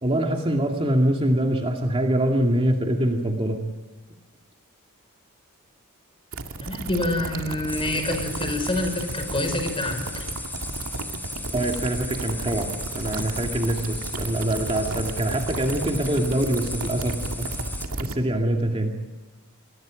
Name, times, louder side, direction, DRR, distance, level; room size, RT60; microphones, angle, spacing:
voice 1, 0.0-3.6 11.5-12.7 13.0-17.5 18.0-18.9, right 1 dB, 25° right, 2 dB, 2.3 m, -24 dB
sound 1, 6.3-18.1, right 2 dB, 70° right, 2.1 m, -33 dB
voice 2, 6.6-10.3, left 1 dB, 25° left, 6 dB, 5.6 m, -27 dB
sound 2, 7.7-17.9, left 2 dB, 10° left, 4.3 m, -37 dB
29.0 x 22.5 x 5.2 m, 1.2 s
head